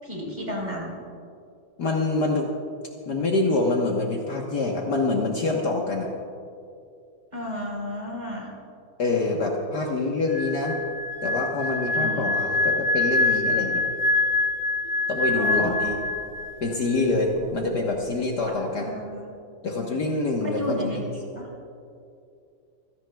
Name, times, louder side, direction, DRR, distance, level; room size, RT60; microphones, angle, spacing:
voice 1, 0.0-1.0 7.3-8.5 11.9-12.3 15.3-16.0 18.4-19.3 20.4-21.0 21.3-21.5, equal, 20° right, -2 dB, 3.9 m, -33 dB
voice 2, 1.8-2.5 3.1-6.1 9.0-10.8 11.2-13.9 15.1-15.9 16.6-18.9 19.6-21.0, left 2 dB, 55° left, 0 dB, 1.7 m, -25 dB
sound 1, 10.3-16.6 16.9-17.2, left 3 dB, 60° right, 3.2 m, -25 dB
26.5 x 17.0 x 2.3 m, 2.5 s
omnidirectional pair, 2.2 m